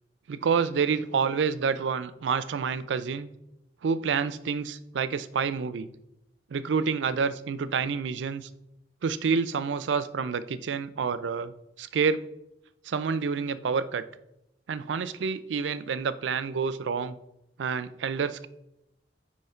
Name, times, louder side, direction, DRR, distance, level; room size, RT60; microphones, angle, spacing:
voice 1, 0.3-3.3 3.8-5.9 6.5-8.5 9.0-11.5 11.8-12.2 12.8-14.0 14.7-17.2 17.6-18.5, right 5 dB, 80° right, 14 dB, 0.4 m, -28 dB
9.3 x 3.1 x 4.3 m, 0.87 s
head